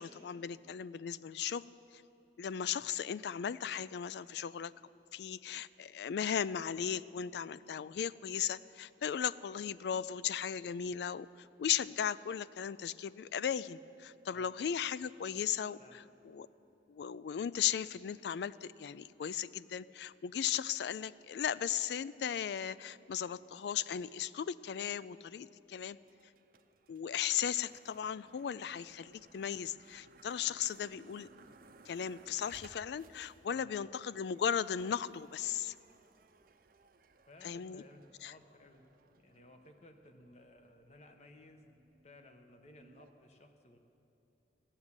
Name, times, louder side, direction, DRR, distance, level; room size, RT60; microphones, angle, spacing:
voice 1, 0.0-1.6 1.9-2.0 2.4-4.7 5.1-16.5 16.9-26.0 26.9-31.3 31.9-35.7 37.4-37.8 38.2-38.3, left 8 dB, 65° left, 18 dB, 0.3 m, -36 dB
sound 1, 26.0-43.1, right 4 dB, 50° right, 0.6 m, -63 dB
voice 2, 33.3-33.8 37.3-38.9 39.2-43.8, left 1 dB, 40° left, 6 dB, 1.0 m, -58 dB
14.5 x 7.3 x 9.6 m, 2.9 s
head